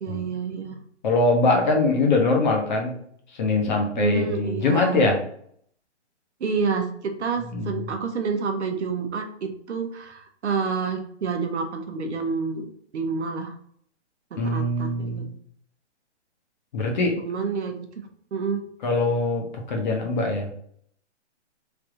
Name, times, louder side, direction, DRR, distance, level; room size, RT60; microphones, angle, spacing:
voice 1, 0.0-0.7 4.0-5.2 6.4-13.5 14.3-15.2 17.2-18.6, right 5 dB, 70° right, 5 dB, 0.8 m, -29 dB
voice 2, 1.0-2.9 3.3-5.2 7.5-7.9 14.4-15.3 16.7-17.2 18.8-20.5, left 3 dB, 40° left, 2 dB, 0.9 m, -23 dB
3.4 x 2.7 x 3.7 m, 0.64 s
hypercardioid pair, 150°, 36 cm